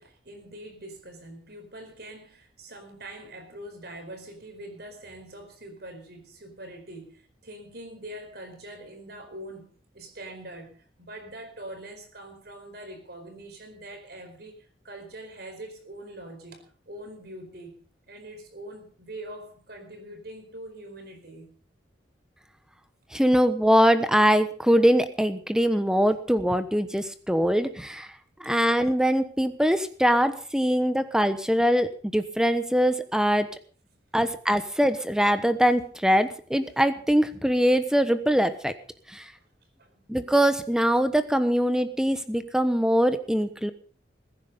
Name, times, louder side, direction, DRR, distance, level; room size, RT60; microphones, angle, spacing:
voice 1, 0.0-17.8 18.1-21.5 34.2-34.3 39.8-40.0, right 1 dB, 60° right, 5 dB, 4.8 m, -43 dB
voice 2, 23.1-28.1 28.4-33.5 34.1-38.8 39.1-39.3 40.1-43.7, equal, 5° right, 11 dB, 1.1 m, -22 dB
21.0 x 10.0 x 5.3 m, 0.43 s
head